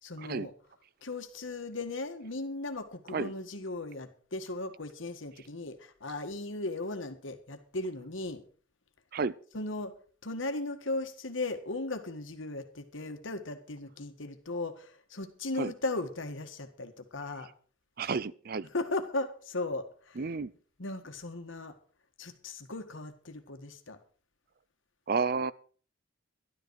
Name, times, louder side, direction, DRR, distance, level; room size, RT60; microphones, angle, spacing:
voice 1, 0.0-0.5 1.0-8.4 9.5-9.9 10.2-17.5 18.7-20.2 20.8-21.7 22.2-24.0, left 2 dB, 80° left, 1.7 m, -37 dB
voice 2, 18.0-18.7 20.2-20.5 25.1-25.5, right 4 dB, 50° right, 0.5 m, -31 dB
12.5 x 12.5 x 4.8 m
head